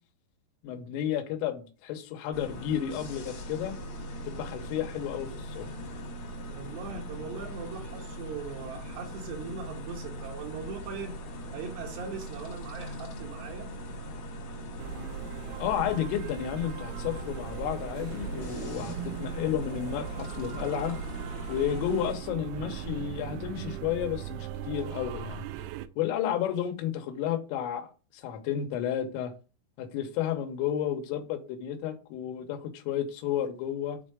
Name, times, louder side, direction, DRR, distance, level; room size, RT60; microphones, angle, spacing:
voice 1, 0.6-3.8 4.3-5.7 15.6-21.0 21.5-25.5 26.0-27.9 28.1-29.3 29.8-34.0, left 10 dB, 90° left, 3.5 m, -32 dB
sound 1, 2.3-22.2, equal, 60° left, 1.7 m, -40 dB
voice 2, 6.5-11.2 11.5-13.7, right 5 dB, 70° right, 2.9 m, -40 dB
sound 2, 14.8-25.9, right 10 dB, 85° right, 3.2 m, -39 dB
8.2 x 4.5 x 5.0 m
omnidirectional pair, 5.8 m